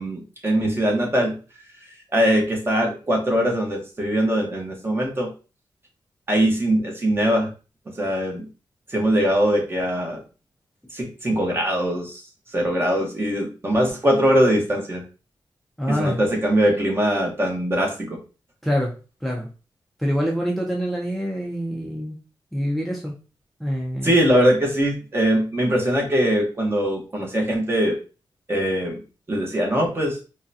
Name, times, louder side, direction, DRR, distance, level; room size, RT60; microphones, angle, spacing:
voice 1, 0.0-1.4 2.1-5.3 6.3-7.5 7.9-8.5 8.9-10.2 10.9-12.2 12.5-15.0 15.9-18.2 24.0-28.0 28.5-29.0 29.3-30.2, equal, 25° right, 0 dB, 1.1 m, -21 dB
voice 2, 15.8-16.2 18.6-18.9 19.2-19.5 20.0-22.2 22.5-23.2 23.6-24.1, equal, ahead, -2 dB, 0.6 m, -25 dB
3.7 x 2.3 x 2.7 m, 0.34 s
wide cardioid pair, 105°, 9 cm